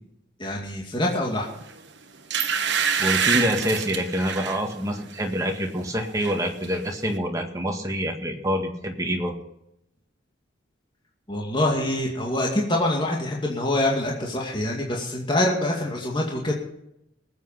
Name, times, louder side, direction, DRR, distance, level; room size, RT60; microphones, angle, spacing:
voice 1, 0.4-1.5 11.3-16.5, left 1 dB, 25° left, -1 dB, 2.3 m, -25 dB
sound 1, 1.6-1.8 2.3-4.6 5.1-5.3 5.6-6.4 6.6-6.7, right 7 dB, 65° right, 1.4 m, -25 dB
voice 2, 3.0-9.3, equal, 15° right, 2 dB, 1.9 m, -26 dB
19.5 x 8.3 x 5.8 m, 0.80 s
head